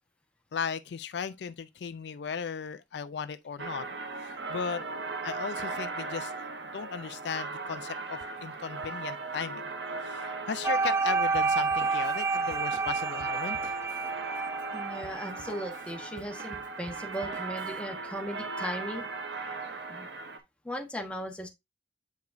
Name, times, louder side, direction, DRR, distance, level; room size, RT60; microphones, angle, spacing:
voice 1, 0.5-3.9 4.2-4.8 5.2-6.4 6.7-9.6 10.0-13.7, left 6 dB, 70° left, 0.4 m, -36 dB
sound 1, 3.6-20.4, right 3 dB, 70° right, 1.0 m, -38 dB
sound 2, 10.6-15.8, right 4 dB, 15° right, 0.3 m, -29 dB
Drum kit, 11.3-17.8, right 2 dB, 45° right, 1.0 m, -50 dB
voice 2, 14.7-19.0 19.9-20.1 20.6-21.5, equal, 5° left, 1.2 m, -37 dB
8.1 x 4.8 x 2.5 m
head